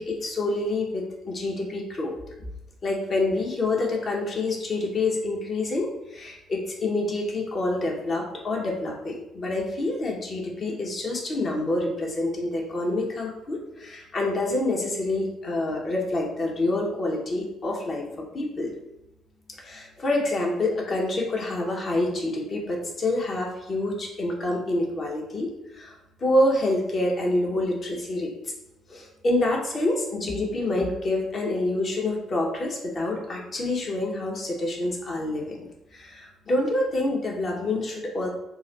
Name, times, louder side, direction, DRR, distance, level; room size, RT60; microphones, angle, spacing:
voice 1, 0.0-2.2 2.8-18.0 18.3-18.7 19.6-25.5 25.7-25.9 26.2-28.3 28.9-35.6 35.9-38.3, left 2 dB, 45° left, 0 dB, 0.9 m, -27 dB
3.0 x 2.5 x 4.0 m, 0.90 s
hypercardioid pair, 45°, 0 cm